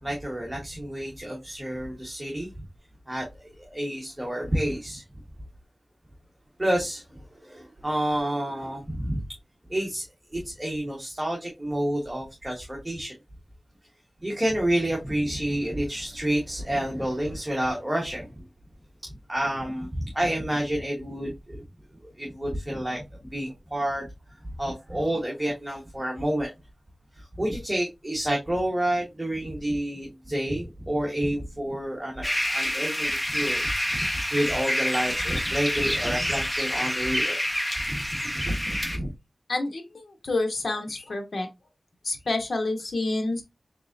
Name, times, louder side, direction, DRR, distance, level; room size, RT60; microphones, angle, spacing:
voice 1, 0.0-2.5 3.1-3.3 3.6-5.0 6.6-7.0 7.3-9.2 9.7-10.0 10.3-13.1 14.2-18.3 19.3-21.6 22.2-23.0 23.3-24.1 24.6-26.5 27.2-37.4 37.9-39.1, right 1 dB, 15° right, 1.2 m, -29 dB
sound 1, 32.2-39.0, equal, 10° left, 0.9 m, -28 dB
voice 2, 39.5-41.5 42.0-43.4, left 2 dB, 80° left, 0.9 m, -28 dB
3.9 x 3.7 x 2.5 m
wide cardioid pair, 90°, 0 cm